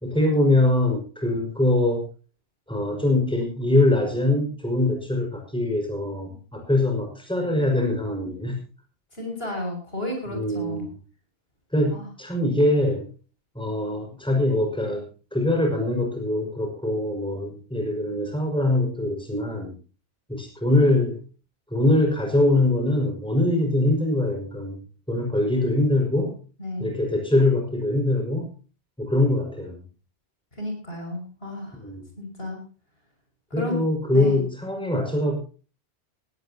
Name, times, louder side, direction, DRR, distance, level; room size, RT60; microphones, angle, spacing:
voice 1, 0.0-2.0 2.7-8.6 10.3-10.9 11.7-13.0 13.6-15.1 15.3-19.7 20.3-21.2 21.7-24.8 25.1-26.3 26.8-28.5 29.0-29.8 31.8-32.0 33.5-35.4, left 1 dB, 5° left, 2 dB, 5.5 m, -23 dB
voice 2, 9.1-10.9 11.9-12.1 26.6-26.9 30.6-31.8 32.2-32.6 33.5-33.8 34.1-34.4, left 1 dB, 55° left, 2 dB, 6.6 m, -32 dB
18.5 x 17.5 x 2.9 m, 0.36 s
omnidirectional pair, 1.2 m